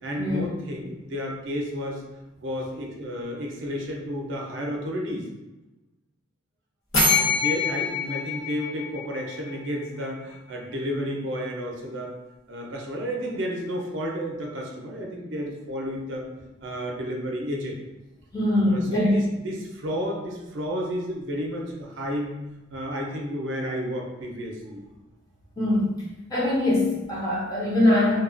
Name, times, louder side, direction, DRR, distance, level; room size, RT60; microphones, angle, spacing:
voice 1, 0.0-2.0 2.4-5.3 7.1-12.2 12.5-16.3 16.6-17.8 18.6-22.4 22.7-24.8, equal, 65° right, 0 dB, 0.5 m, -31 dB
sound 1, 6.9-9.7, left 4 dB, 90° left, 1.1 m, -25 dB
voice 2, 18.3-19.2 25.6-25.9 26.3-28.2, left 1 dB, 20° left, -6 dB, 0.6 m, -22 dB
2.7 x 2.2 x 2.5 m, 1.0 s
head